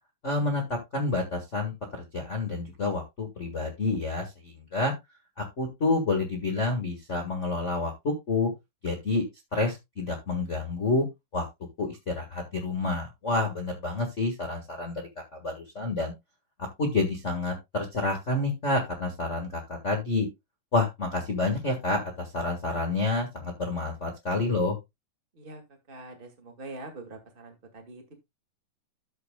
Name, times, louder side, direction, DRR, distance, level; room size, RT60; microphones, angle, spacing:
voice 1, 0.2-4.9 5.4-8.5 8.8-9.2 9.5-11.0 11.3-11.4 11.8-15.0 15.3-16.1 16.8-20.3 20.7-24.8, left 3 dB, 55° left, 3 dB, 0.7 m, -29 dB
voice 2, 25.9-28.2, right 2 dB, 25° right, 4 dB, 1.2 m, -44 dB
12.5 x 7.4 x 2.3 m, 0.21 s
omnidirectional pair, 4.3 m